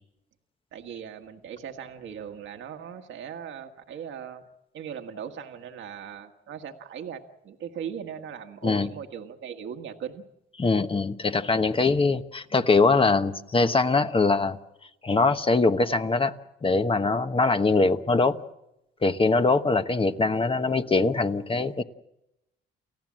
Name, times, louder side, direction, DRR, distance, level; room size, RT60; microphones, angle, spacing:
voice 1, 0.7-4.5 4.7-10.2, right 8 dB, 75° right, 1.6 m, -39 dB
voice 2, 10.6-14.6 15.0-16.3 16.6-18.4 19.0-21.8, left 3 dB, 25° left, 1.1 m, -22 dB
29.5 x 15.0 x 7.5 m
cardioid pair, 90°, 20 cm